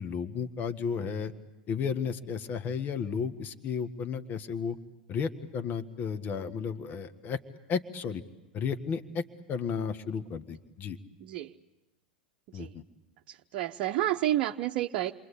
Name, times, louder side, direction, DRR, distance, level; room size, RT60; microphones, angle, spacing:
voice 1, 0.0-1.3 1.7-4.7 5.1-7.4 7.7-8.2 8.5-11.0 12.5-12.8, left 6 dB, 40° left, 9 dB, 1.7 m, -33 dB
voice 2, 11.2-11.5 12.5-12.7 13.3-15.1, right 13 dB, 50° right, 3 dB, 0.9 m, -30 dB
29.0 x 24.0 x 8.5 m, 1.1 s
hypercardioid pair, 90°, 5 cm